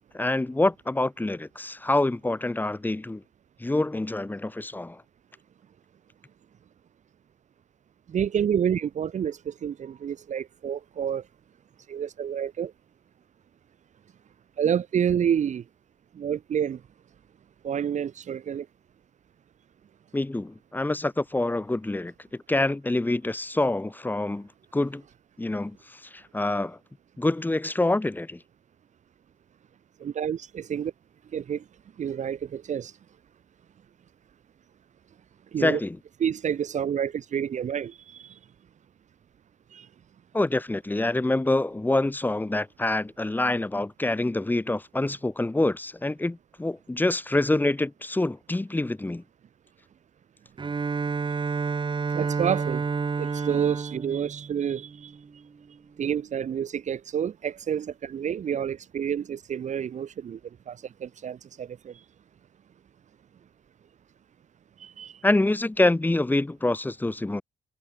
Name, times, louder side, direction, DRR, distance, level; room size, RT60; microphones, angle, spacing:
voice 1, 0.1-3.2 3.6-5.0 20.1-22.1 22.5-25.0 25.4-25.8 26.1-26.8 27.2-28.4 35.6-36.0 40.3-49.2 65.2-67.4, left 2 dB, 10° left, 4.1 m, -26 dB
voice 2, 8.1-11.2 11.9-12.7 14.6-15.6 16.2-16.8 17.6-18.7 30.0-30.9 31.3-31.6 32.0-32.9 35.5-35.8 36.2-38.3 39.7-39.9 52.1-52.9 53.2-55.1 56.0-60.4 60.7-61.9 64.8-65.2, right 8 dB, 45° right, 2.1 m, -29 dB
Bowed string instrument, 50.6-55.4, right 5 dB, 30° right, 4.9 m, -30 dB
cardioid pair, 110°, 17 cm